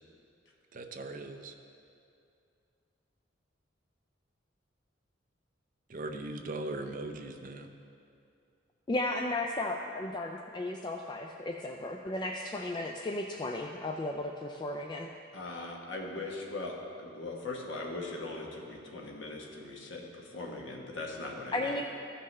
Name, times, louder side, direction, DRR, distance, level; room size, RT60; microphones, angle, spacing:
voice 1, 0.7-1.5 5.9-7.7, right 2 dB, 45° right, 5 dB, 0.6 m, -39 dB
voice 2, 8.9-15.1 21.5-21.8, left 2 dB, 25° left, 2 dB, 0.3 m, -34 dB
voice 3, 15.3-20.1 20.3-21.7, left 2 dB, 70° left, 0 dB, 1.2 m, -40 dB
14.0 x 5.5 x 3.3 m, 2.5 s
head